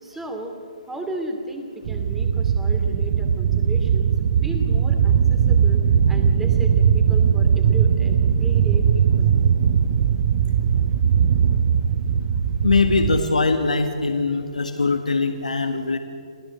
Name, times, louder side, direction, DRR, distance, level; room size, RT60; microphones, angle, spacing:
voice 1, 0.0-0.5 0.9-4.1 4.4-5.8 6.1-9.3, right 1 dB, 5° right, 4 dB, 2.6 m, -34 dB
sound 1, 1.8-13.2, right 7 dB, 45° right, 0.8 m, -19 dB
voice 2, 12.6-16.0, left 4 dB, 90° left, 6 dB, 1.7 m, -21 dB
27.0 x 16.0 x 8.1 m, 2.4 s
hypercardioid pair, 145°, 4 cm